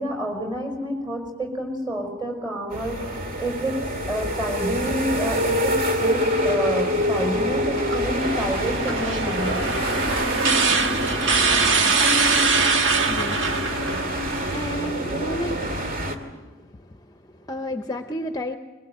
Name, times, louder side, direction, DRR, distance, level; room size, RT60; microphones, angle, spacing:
voice 1, 0.0-3.8 4.1-9.6, right 1 dB, 20° right, 3 dB, 5.4 m, -28 dB
sound 1, 2.7-16.2, equal, 45° right, 2.2 m, -26 dB
Coin (dropping), 6.6-14.1, right 2 dB, 85° right, 3.3 m, -42 dB
sound 2, 8.2-14.7, right 4 dB, 70° right, 1.5 m, -23 dB
voice 2, 12.3-18.6, equal, 20° left, 6 dB, 0.7 m, -34 dB
22.0 x 21.5 x 7.9 m, 1.2 s
head